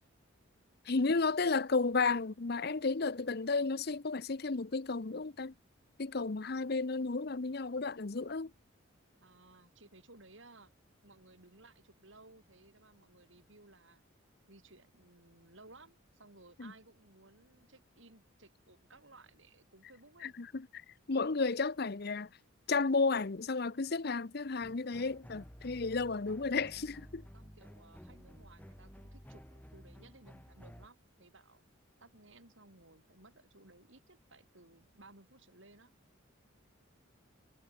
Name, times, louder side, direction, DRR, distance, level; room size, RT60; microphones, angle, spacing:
voice 1, 0.9-5.5 6.0-8.5 16.6-16.7 20.2-20.8 21.1-22.3 22.7-27.2, left 4 dB, 50° left, 0.7 m, -33 dB
voice 2, 9.2-10.7 11.0-14.0 14.5-20.3 27.3-31.6 32.0-35.9, right 2 dB, 65° right, 6.9 m, -59 dB
sound 1, 24.6-30.9, equal, 10° left, 3.3 m, -53 dB
head